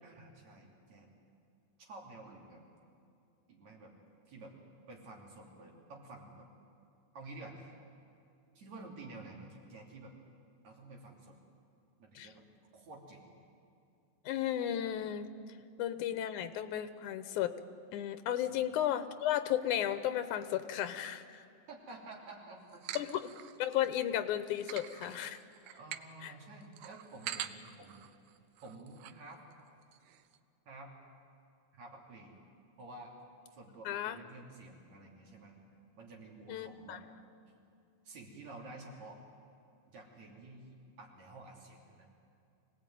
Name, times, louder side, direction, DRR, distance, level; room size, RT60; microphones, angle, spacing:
voice 1, 0.0-1.1 1.8-2.6 3.5-3.9 4.3-4.5 4.9-6.5 7.1-7.7 8.6-10.1 10.6-11.4 12.0-12.5 12.7-13.3 18.4-18.7 21.7-22.8 25.8-28.0 28.6-29.4 30.7-30.9 31.7-32.4 32.8-33.1 33.5-35.6 36.0-37.0 38.0-39.2 39.9-42.1, right 2 dB, 65° right, -1 dB, 4.2 m, -51 dB
voice 2, 14.3-15.3 15.8-17.6 17.9-21.5 23.0-23.3 23.6-25.4 26.2-26.3 33.9-34.2 36.5-37.0, left 11 dB, 90° left, 11 dB, 2.4 m, -34 dB
sound 1, 22.7-24.0 24.4-29.2 29.5-29.6 29.8-30.4, right 11 dB, 80° right, 2.1 m, -46 dB
25.0 x 18.0 x 9.2 m, 2.6 s
omnidirectional pair, 3.4 m